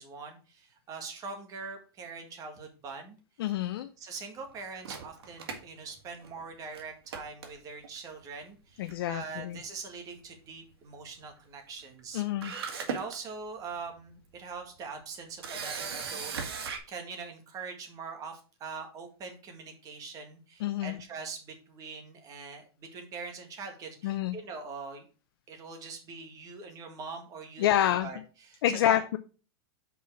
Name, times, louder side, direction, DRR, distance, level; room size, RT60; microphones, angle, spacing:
voice 1, 0.0-3.2 4.0-12.2 12.9-25.1 25.5-29.0, right 4 dB, 25° right, 4 dB, 1.8 m, -43 dB
voice 2, 3.4-3.9 8.8-9.6 12.1-12.5 20.6-21.0 24.0-24.4 27.6-28.1 28.6-29.2, left 12 dB, 70° left, 9 dB, 0.6 m, -27 dB
Camera, 4.8-6.4 6.7-6.8 7.1-8.0 8.9-9.2 9.4-9.5 12.0-12.1 12.4-13.2 13.7-13.9 15.4-16.8, right 5 dB, 90° right, 1.8 m, -37 dB
5.6 x 4.6 x 6.1 m, 0.36 s
supercardioid pair, 150°, 13 cm